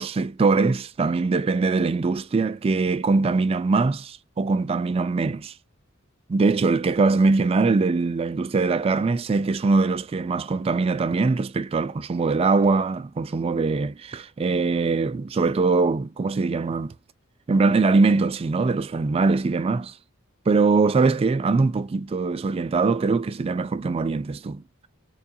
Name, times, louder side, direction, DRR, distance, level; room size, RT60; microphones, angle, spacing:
voice 1, 0.0-5.5 6.3-17.0 17.5-19.9 20.5-24.6, right 3 dB, 30° right, 0.3 m, -22 dB
4.5 x 2.3 x 2.6 m
head